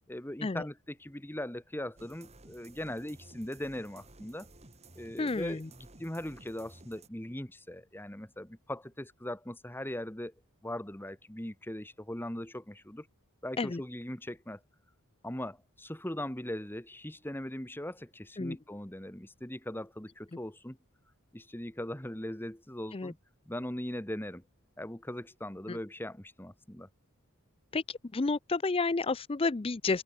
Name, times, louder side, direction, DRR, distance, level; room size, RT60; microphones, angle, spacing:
voice 1, 0.1-4.5 4.9-10.3 10.6-13.1 13.4-14.6 15.2-20.8 21.3-23.2 23.5-24.4 24.8-26.9, left 1 dB, 10° left, 1.3 m, -40 dB
sound 1, 2.0-7.1, right 2 dB, 30° right, 2.7 m, -55 dB
voice 2, 5.2-5.7 13.6-13.8 18.4-18.6 22.9-23.1 25.7-25.8 27.7-30.0, left 3 dB, 25° left, 0.5 m, -31 dB
head